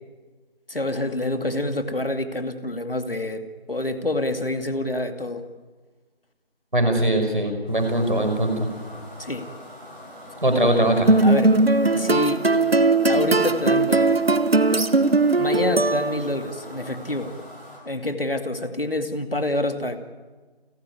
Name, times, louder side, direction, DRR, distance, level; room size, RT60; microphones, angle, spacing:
voice 1, 0.7-5.4 9.2-9.5 11.2-11.6 11.9-12.5 13.1-14.1 15.4-17.3 17.9-20.0, left 1 dB, 65° left, 7 dB, 2.4 m, -27 dB
voice 2, 6.7-8.7 10.4-11.1, right 1 dB, 55° right, 6 dB, 5.4 m, -21 dB
sound 1, 7.7-17.7, left 1 dB, 5° left, 4.5 m, -42 dB
sound 2, 11.1-16.5, right 3 dB, 70° right, 1.0 m, -19 dB
29.5 x 15.0 x 9.5 m, 1.3 s
figure-of-eight pair, 175°, 31 cm